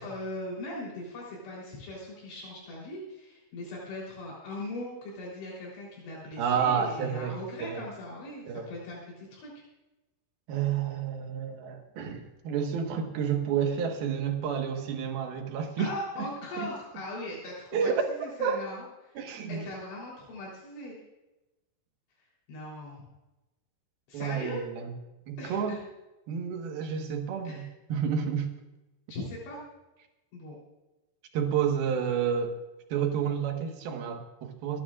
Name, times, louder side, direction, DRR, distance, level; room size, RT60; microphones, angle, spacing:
voice 1, 0.0-9.6 15.8-17.9 18.2-19.2 19.5-21.0 22.5-23.0 24.1-24.6 25.4-25.8 27.4-27.6 29.1-29.6 30.3-30.6, left 1 dB, 80° left, -4 dB, 6.0 m, -39 dB
voice 2, 6.4-7.9 8.5-8.7 10.5-15.9 16.2-16.3 16.6-16.7 17.7-18.1 18.4-18.6 19.2-19.6 24.1-24.9 25.3-25.8 26.3-28.5 31.3-32.6 32.9-34.8, right 7 dB, 65° right, 4 dB, 3.0 m, -30 dB
26.0 x 11.5 x 2.5 m, 1.0 s
omnidirectional pair, 5.2 m